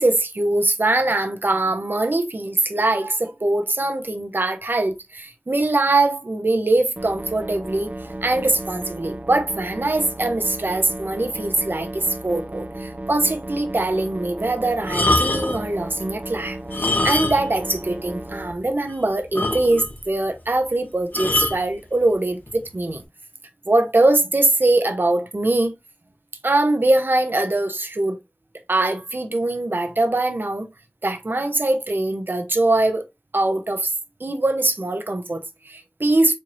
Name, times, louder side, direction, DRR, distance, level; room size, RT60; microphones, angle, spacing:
voice 1, 0.0-23.0 23.7-25.7 26.4-28.2 28.7-30.7 31.0-33.0 33.3-33.9 34.2-36.3, right 2 dB, 75° right, 0.7 m, -22 dB
sound 1, 7.0-18.5, right 1 dB, 45° right, 0.6 m, -34 dB
sound 2, 14.8-15.7 16.6-17.6 17.9-18.0 18.5-18.6 18.9-19.0 19.4-20.0 21.1-21.6 22.5-22.7, left 2 dB, 65° left, 0.9 m, -23 dB
4.5 x 3.0 x 2.5 m
wide cardioid pair, 40°, 3 cm